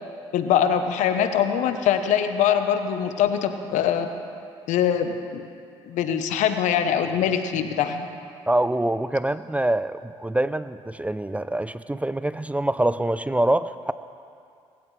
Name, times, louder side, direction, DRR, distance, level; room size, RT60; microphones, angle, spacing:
voice 1, 0.3-4.1 4.7-5.4 5.9-8.1, left 8 dB, 75° left, 8 dB, 1.0 m, -23 dB
voice 2, 8.5-13.9, right 1 dB, 10° right, 14 dB, 0.5 m, -25 dB
19.5 x 15.5 x 3.3 m, 2.4 s
supercardioid pair, 65°, 13 cm